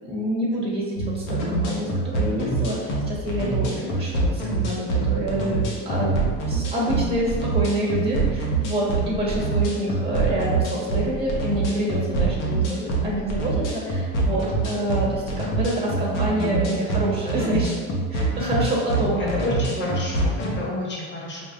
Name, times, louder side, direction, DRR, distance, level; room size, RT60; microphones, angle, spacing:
voice 1, 0.0-6.2 6.5-17.8 18.1-19.5 19.7-19.9, right 1 dB, 15° right, -4 dB, 1.1 m, -27 dB
sound 1, 1.0-20.6, right 3 dB, 65° left, 1.0 m, -25 dB
voice 2, 3.3-3.9 12.1-12.6 19.0-21.5, left 1 dB, 30° left, -4 dB, 1.3 m, -31 dB
5.0 x 2.5 x 2.5 m, 1.5 s
supercardioid pair, 80°, 33 cm